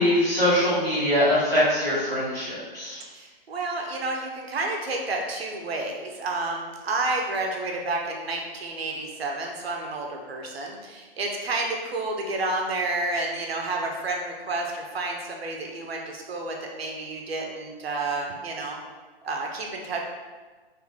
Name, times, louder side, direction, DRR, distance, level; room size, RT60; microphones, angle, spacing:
voice 1, 0.0-3.0, left 1 dB, 10° left, -14 dB, 1.5 m, -22 dB
voice 2, 3.1-18.8 19.2-20.0, right 2 dB, 80° right, 1 dB, 0.8 m, -30 dB
3.7 x 2.7 x 3.6 m, 1.4 s
hypercardioid pair, 160°, 30 cm